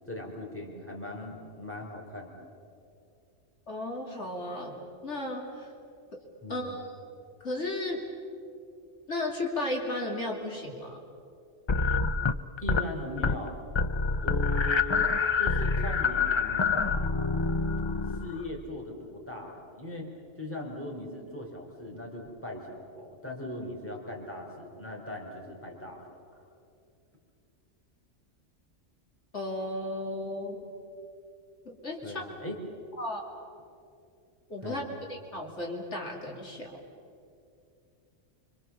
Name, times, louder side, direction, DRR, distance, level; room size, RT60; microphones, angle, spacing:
voice 1, 0.1-2.5 6.4-6.8 12.6-13.6 14.2-15.1 15.4-16.9 18.1-20.1 20.4-26.0 26.3-26.4 32.0-32.6 34.6-34.9, left 1 dB, 10° left, 0 dB, 3.8 m, -39 dB
voice 2, 3.7-5.7 6.5-6.9 7.4-8.0 9.1-11.0 29.3-30.6 31.6-32.2 33.0-33.2 34.5-34.8 35.1-36.8, left 1 dB, 70° left, -1 dB, 3.4 m, -34 dB
sound 1, 11.7-12.9 13.2-13.5 13.8-18.5, left 4 dB, 35° left, 0.5 m, -27 dB
26.5 x 25.0 x 7.1 m, 2.5 s
omnidirectional pair, 1.2 m